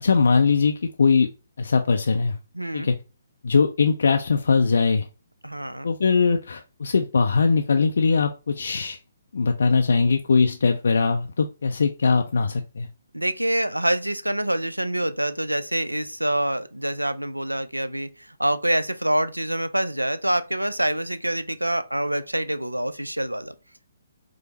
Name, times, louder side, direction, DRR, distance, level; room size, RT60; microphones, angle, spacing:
voice 1, 0.0-1.3 1.6-2.4 2.7-3.0 3.4-5.1 5.8-9.0 9.3-12.9, left 4 dB, 60° left, 0.3 m, -21 dB
voice 2, 2.5-2.9 5.4-5.9 13.1-23.5, right 1 dB, 85° right, 0.3 m, -26 dB
4.8 x 2.0 x 2.8 m
figure-of-eight pair, 135°, 0 cm